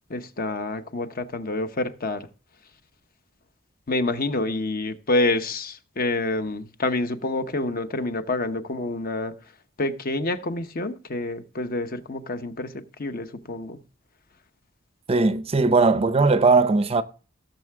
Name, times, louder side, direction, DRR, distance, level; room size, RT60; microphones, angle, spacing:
voice 1, 0.1-2.3 3.9-9.3 9.8-13.8, left 2 dB, 45° left, 0.9 m, -27 dB
voice 2, 15.1-17.0, right 3 dB, 30° right, 0.5 m, -19 dB
17.0 x 6.7 x 3.6 m
head